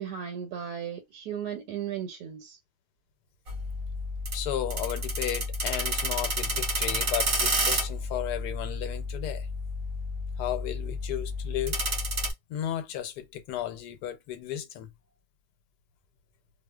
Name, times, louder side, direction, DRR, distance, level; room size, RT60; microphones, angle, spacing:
voice 1, 0.0-2.6, right 9 dB, 85° right, 1.2 m, -36 dB
sound 1, 3.5-12.3, equal, 55° right, 0.9 m, -30 dB
voice 2, 4.3-9.5 10.4-11.8 12.5-14.9, left 11 dB, 85° left, 1.2 m, -34 dB
2.4 x 2.4 x 2.2 m
omnidirectional pair, 1.7 m